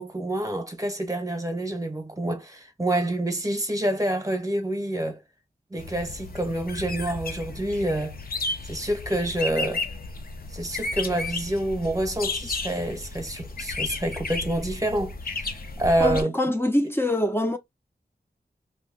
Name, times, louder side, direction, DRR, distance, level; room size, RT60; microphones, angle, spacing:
voice 1, 0.0-5.2 5.7-8.2 8.6-9.8 10.5-16.3, right 1 dB, 20° right, 0.9 m, -27 dB
sound 1, 5.8-16.2, left 3 dB, 60° left, 0.6 m, -33 dB
voice 2, 16.0-17.6, left 1 dB, 15° left, 0.5 m, -24 dB
2.7 x 2.1 x 3.6 m
wide cardioid pair, 85°, 18 cm